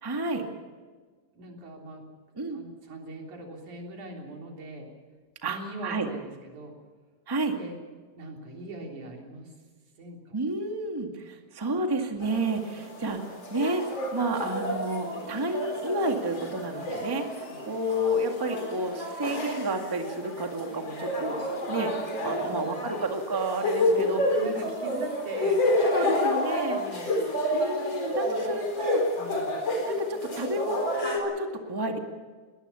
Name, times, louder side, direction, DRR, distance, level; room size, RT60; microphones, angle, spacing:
voice 1, 0.0-0.4 2.4-2.6 5.4-6.1 7.3-7.5 10.3-13.8 14.1-24.2 25.9-26.8 27.5-29.0 29.8-32.0, right 1 dB, 10° right, 3 dB, 1.4 m, -30 dB
voice 2, 1.3-2.0 2.5-4.9 5.4-6.8 7.6-7.8 8.2-9.5 10.0-10.4 17.4-17.6 22.5-22.7 23.8-25.6 26.7-27.2 29.2-29.6, right 1 dB, 85° right, 0 dB, 5.0 m, -41 dB
sound 1, 12.2-31.2, left 1 dB, 40° left, 4.7 m, -30 dB
21.5 x 19.5 x 7.0 m, 1.4 s
omnidirectional pair, 3.4 m